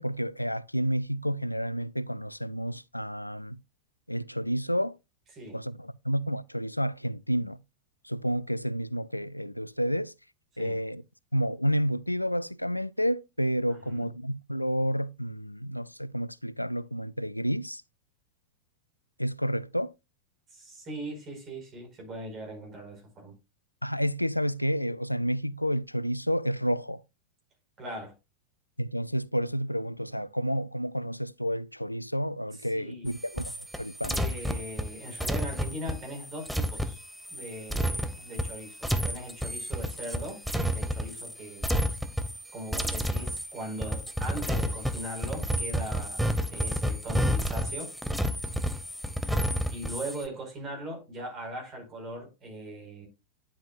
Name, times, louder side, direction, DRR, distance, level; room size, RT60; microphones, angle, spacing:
voice 1, 0.0-3.6 4.1-4.9 5.5-7.6 8.0-10.1 10.6-11.0 11.3-17.8 19.2-19.9 23.8-27.0 28.8-33.5 33.8-34.2, equal, 90° left, 0.3 m, -30 dB
voice 2, 20.5-23.3 27.8-28.1 32.5-33.1 34.1-37.0 37.3-41.8 42.5-46.2 46.5-47.9 49.7-53.1, right 1 dB, 30° right, 4.9 m, -40 dB
sound 1, 33.1-41.3 41.6-42.4 42.7-50.2, equal, ahead, 0.7 m, -30 dB
9.9 x 7.4 x 2.4 m
figure-of-eight pair, 90°, 0 cm